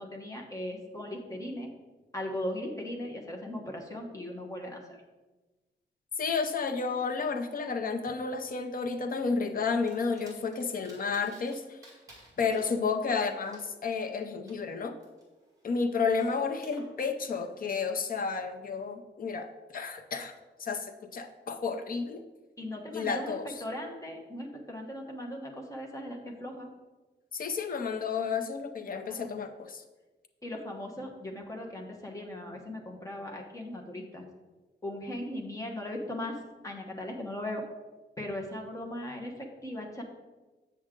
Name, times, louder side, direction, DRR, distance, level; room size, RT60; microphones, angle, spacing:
voice 1, 0.0-1.7 2.1-5.0 22.6-26.7 29.1-29.3 30.4-34.3 34.8-36.4 36.6-37.6 38.2-40.0, left 1 dB, 15° left, 1 dB, 1.1 m, -38 dB
voice 2, 6.2-11.8 12.4-15.0 15.6-20.3 20.6-22.2 22.9-23.6 27.3-29.8, left 5 dB, 50° left, 6 dB, 0.6 m, -31 dB
sound 1, 9.9-11.6 11.8-14.6 15.0-16.8, right 1 dB, 15° right, 2.0 m, -55 dB
7.8 x 6.3 x 3.7 m, 1.2 s
wide cardioid pair, 150°, 19 cm